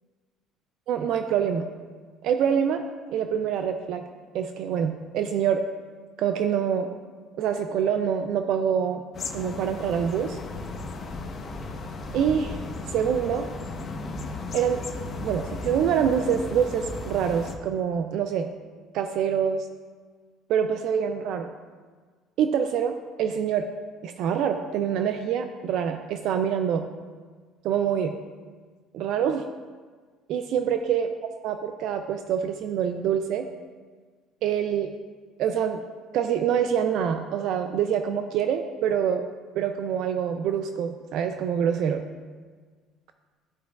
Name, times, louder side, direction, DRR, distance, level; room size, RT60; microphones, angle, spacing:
voice 1, 0.9-1.7 2.2-4.0 4.3-5.6 6.2-6.9 7.4-9.0 9.3-10.4 12.1-12.6 12.9-13.5 14.5-14.8 15.2-18.5 18.9-19.7 20.5-21.5 22.4-23.6 24.0-26.9 27.6-28.1 28.9-29.4 30.3-31.1 31.4-33.5 34.4-34.9 35.4-35.8 36.1-39.2 39.6-42.0, right 8 dB, 60° right, 7 dB, 0.4 m, -25 dB
sound 1, 9.1-17.5, left 3 dB, 35° left, 0.8 m, -35 dB
12.5 x 4.7 x 2.3 m, 1.5 s
cardioid pair, 130°, 0 cm